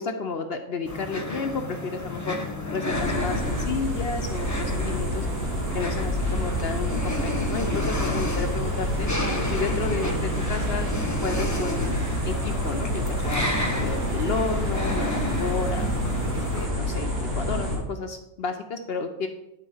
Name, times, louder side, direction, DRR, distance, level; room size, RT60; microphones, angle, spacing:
voice 1, 0.0-2.4 2.7-5.3 5.7-9.1 9.5-10.9 11.2-15.9 16.3-19.3, left 4 dB, 55° left, 6 dB, 0.7 m, -32 dB
sound 1, 0.8-16.7, left 1 dB, 15° left, 0.9 m, -32 dB
sound 2, 2.9-17.8, equal, 85° right, 2.6 m, -28 dB
9.9 x 4.1 x 5.5 m, 0.91 s
omnidirectional pair, 1.5 m